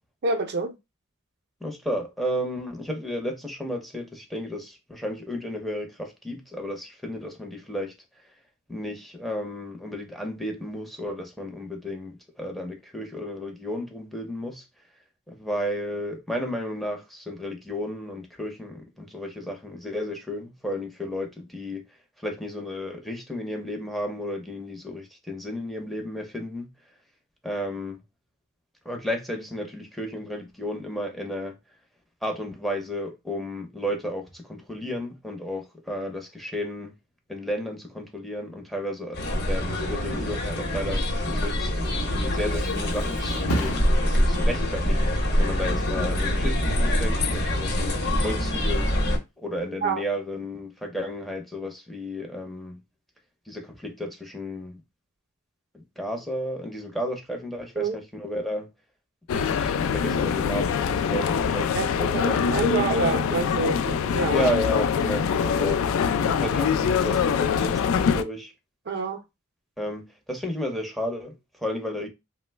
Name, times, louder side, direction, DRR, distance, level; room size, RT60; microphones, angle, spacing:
voice 1, 0.2-0.8 49.8-50.0 57.8-58.0 61.7-64.5 68.9-69.2, right 3 dB, 50° right, 0.5 m, -27 dB
voice 2, 1.6-7.9 8.7-14.6 15.3-21.9 22.2-26.7 27.4-28.0 28.8-31.6 32.2-36.9 37.3-43.8 44.3-48.9 49.4-52.8 53.5-54.8 55.7-58.7 59.3-62.5 64.2-65.8 66.3-68.5 69.8-72.1, left 1 dB, ahead, 0.5 m, -33 dB
sound 1, 39.1-49.2, equal, 50° left, 0.8 m, -25 dB
Thump thud, 41.9-49.4 49.8-50.2, equal, 85° left, 0.7 m, -38 dB
sound 2, 59.3-68.2, left 6 dB, 65° left, 0.3 m, -24 dB
2.9 x 2.1 x 3.3 m
head